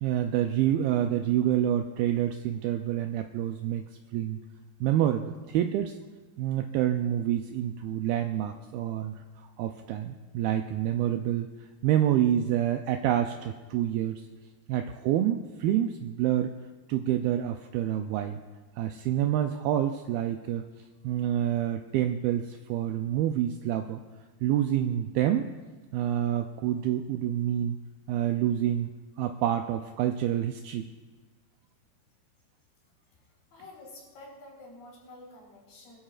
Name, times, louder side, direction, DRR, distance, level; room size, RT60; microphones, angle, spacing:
voice 1, 0.0-3.8 4.1-4.4 4.8-5.9 6.4-9.2 9.6-11.5 11.8-14.2 14.7-16.6 16.9-18.4 18.8-20.6 21.0-24.0 24.4-25.5 25.9-27.8 28.1-28.9 29.2-30.9, right 11 dB, 85° right, 5 dB, 2.2 m, -27 dB
voice 2, 33.5-36.0, left 2 dB, 90° left, -3 dB, 6.4 m, -49 dB
22.5 x 13.0 x 2.5 m, 1.3 s
omnidirectional pair, 4.7 m